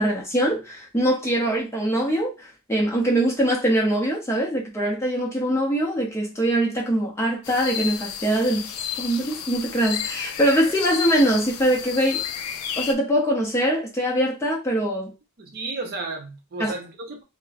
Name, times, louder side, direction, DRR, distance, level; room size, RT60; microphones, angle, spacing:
voice 1, 0.0-12.2 12.8-15.1 16.6-16.7, right 1 dB, 10° left, 0.5 m, -23 dB
sound 1, 7.4-12.9, left 9 dB, 85° left, 0.3 m, -32 dB
voice 2, 15.4-17.2, right 3 dB, 45° right, 0.5 m, -33 dB
2.9 x 2.0 x 2.3 m
head